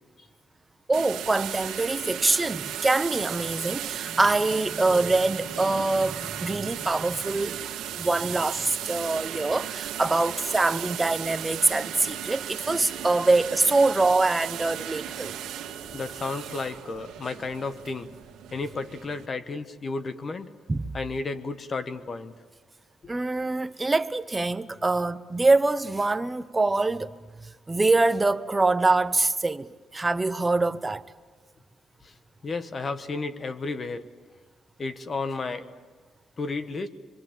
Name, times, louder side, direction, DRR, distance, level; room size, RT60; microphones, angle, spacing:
voice 1, 0.9-7.6 8.0-15.4 20.7-20.9 23.1-27.1 27.4-31.0, right 2 dB, 20° right, 0.9 m, -24 dB
sound 1, 0.9-19.3, right 10 dB, 85° right, 2.0 m, -36 dB
voice 2, 7.9-8.3 15.9-18.1 18.5-20.5 20.9-22.4 32.0-32.1 32.4-34.1 34.8-35.7 36.4-36.9, left 3 dB, 40° left, 1.3 m, -33 dB
25.5 x 24.5 x 7.5 m
cardioid pair, 90°, 0 cm